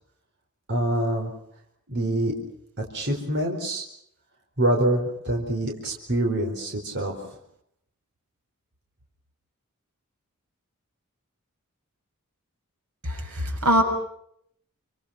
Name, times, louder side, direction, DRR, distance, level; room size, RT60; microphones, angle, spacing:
voice 1, 0.7-1.3 1.9-2.3 2.8-3.8 4.6-7.1, right 1 dB, 50° right, 2 dB, 4.6 m, -25 dB
voice 2, 13.1-13.8, equal, 85° right, 4 dB, 6.6 m, -22 dB
29.5 x 25.5 x 5.9 m, 0.71 s
head